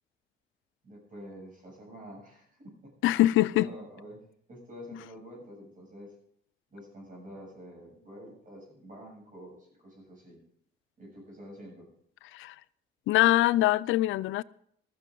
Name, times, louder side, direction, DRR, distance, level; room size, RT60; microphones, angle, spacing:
voice 1, 0.8-2.9 3.5-4.2 4.5-6.1 6.7-10.4 11.0-11.9, equal, 40° right, 7.2 m, -47 dB
voice 2, 3.0-3.7 12.3-12.5 13.1-14.4, left 15 dB, 85° left, 0.4 m, -23 dB
14.0 x 14.0 x 3.8 m
cardioid pair, 90°, 20 cm